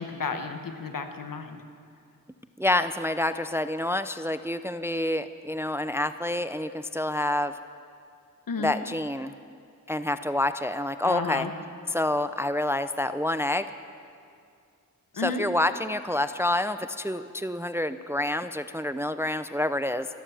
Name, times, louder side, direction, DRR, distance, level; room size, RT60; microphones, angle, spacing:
voice 1, 0.0-1.6 8.5-8.7 11.0-11.5 15.2-15.4, left 5 dB, 75° left, 7 dB, 1.3 m, -32 dB
voice 2, 2.6-7.6 8.6-9.3 9.9-11.5 11.9-13.7 15.2-20.1, left 1 dB, 10° right, 11 dB, 0.4 m, -28 dB
15.5 x 12.5 x 7.2 m, 2.3 s
wide cardioid pair, 100°, 34 cm